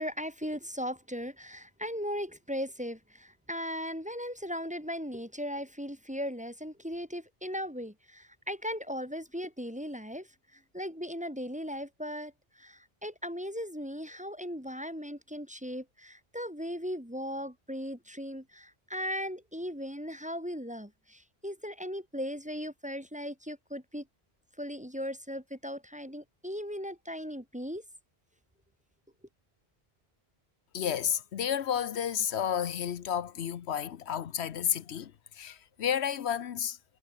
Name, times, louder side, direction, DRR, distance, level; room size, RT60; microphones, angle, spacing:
voice 1, 0.0-24.1 24.6-27.8, equal, 5° right, 1.8 m, -38 dB
voice 2, 30.7-36.8, left 9 dB, 80° left, 1.1 m, -31 dB
omnidirectional pair, 1.1 m